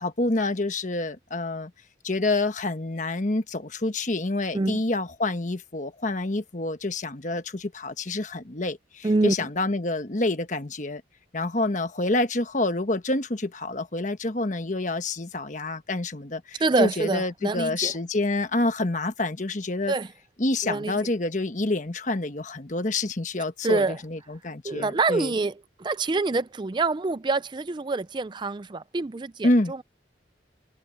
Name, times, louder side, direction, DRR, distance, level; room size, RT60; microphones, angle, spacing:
voice 1, 0.0-1.7 2.0-11.0 11.3-19.9 20.4-25.3 29.4-29.7, left 2 dB, 40° left, 1.2 m, -27 dB
voice 2, 9.0-9.4 16.6-17.9 19.9-20.1 20.6-20.9 23.6-24.0 24.6-25.5 25.8-29.8, right 3 dB, 25° right, 0.4 m, -26 dB
head